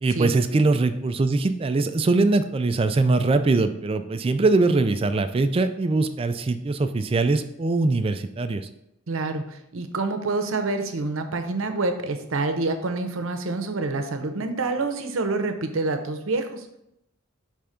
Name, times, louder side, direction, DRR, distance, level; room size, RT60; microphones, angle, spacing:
voice 1, 0.0-8.7, right 3 dB, 25° right, 10 dB, 0.3 m, -22 dB
voice 2, 9.1-16.7, right 3 dB, 75° right, 7 dB, 0.7 m, -27 dB
5.6 x 3.4 x 5.0 m, 0.81 s
head